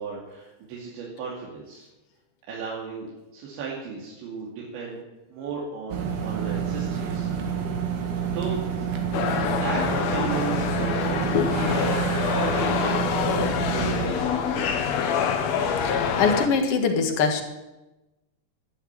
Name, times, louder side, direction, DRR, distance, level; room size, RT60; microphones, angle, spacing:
voice 1, 0.0-1.8 2.5-5.0 5.3-7.3 8.3-8.6 9.6-12.1 12.3-14.8, right 5 dB, 90° right, -4 dB, 4.9 m, -35 dB
sound 1, 5.9-14.1, right 7 dB, 65° right, 3.5 m, -28 dB
sound 2, 9.1-16.5, left 7 dB, 75° left, 1.5 m, -25 dB
voice 2, 15.8-17.4, left 5 dB, 60° left, 5 dB, 1.5 m, -23 dB
12.0 x 11.5 x 8.9 m, 1.0 s
omnidirectional pair, 5.0 m